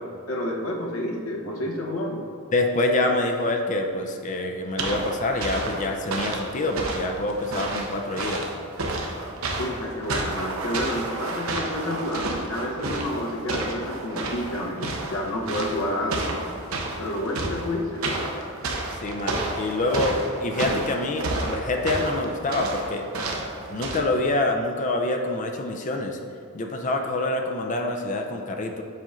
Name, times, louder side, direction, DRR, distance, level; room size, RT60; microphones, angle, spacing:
voice 1, 0.3-2.3 9.6-16.5 17.0-18.1, left 1 dB, 70° left, 0 dB, 0.8 m, -29 dB
voice 2, 2.5-8.5 18.9-23.1 23.7-26.2 26.5-28.8, left 2 dB, 35° left, 3 dB, 0.4 m, -26 dB
sound 1, 4.8-24.0, right 2 dB, 75° right, 0.7 m, -31 dB
7.4 x 2.5 x 5.4 m, 2.3 s
head